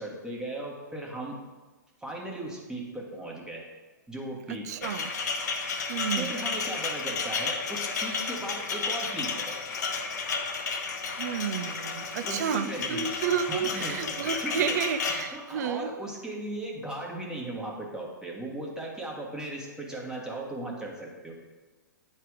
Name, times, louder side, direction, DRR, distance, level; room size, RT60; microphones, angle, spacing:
voice 1, 0.0-1.4 2.0-3.7 4.1-5.0 6.1-9.6 12.2-14.8 15.1-21.3, right 1 dB, 5° right, -3 dB, 1.3 m, -37 dB
voice 2, 4.5-5.1 5.9-6.3 11.2-15.9, right 8 dB, 60° right, 11 dB, 0.5 m, -31 dB
sound 1, 4.8-15.2, left 4 dB, 60° left, 0.9 m, -32 dB
9.2 x 3.3 x 4.7 m, 1.3 s
hypercardioid pair, 130°, 10 cm